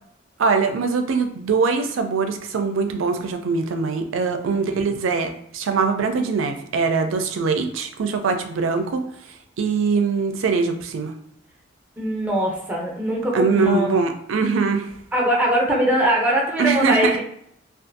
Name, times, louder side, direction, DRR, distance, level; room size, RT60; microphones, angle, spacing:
voice 1, 0.4-9.0 9.6-11.1 13.3-14.9 16.6-17.2, right 4 dB, 90° right, 6 dB, 0.4 m, -22 dB
voice 2, 12.0-14.0 15.1-17.2, equal, 10° right, -3 dB, 0.6 m, -21 dB
2.5 x 2.3 x 2.6 m, 0.72 s
head